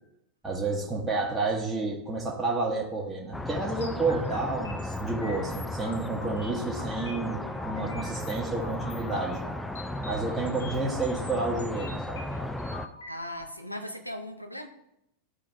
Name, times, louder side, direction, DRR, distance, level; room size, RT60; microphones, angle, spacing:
voice 1, 0.4-9.4 10.0-12.2, right 3 dB, 10° right, -3 dB, 1.1 m, -30 dB
sound 1, 3.3-12.9, left 1 dB, 5° left, 0.5 m, -35 dB
sound 2, 3.8-13.4, left 3 dB, 70° left, 1.0 m, -45 dB
voice 2, 13.1-14.7, left 1 dB, 90° left, 7 dB, 0.7 m, -38 dB
12.5 x 4.8 x 2.6 m, 0.83 s
figure-of-eight pair, 90°, 0 cm